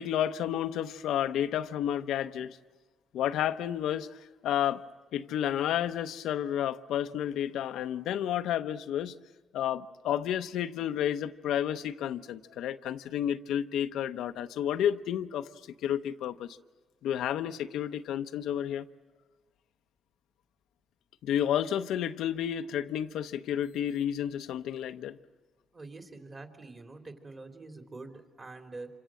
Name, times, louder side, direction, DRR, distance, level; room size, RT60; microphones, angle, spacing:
voice 1, 0.0-2.6 3.1-4.8 5.1-9.1 9.5-15.5 15.8-16.5 17.0-18.9 21.2-25.2, left 10 dB, 85° left, 0.8 m, -31 dB
voice 2, 25.7-28.9, right 3 dB, 35° right, 3.4 m, -45 dB
27.0 x 26.0 x 7.7 m
cardioid pair, 90°, 0 cm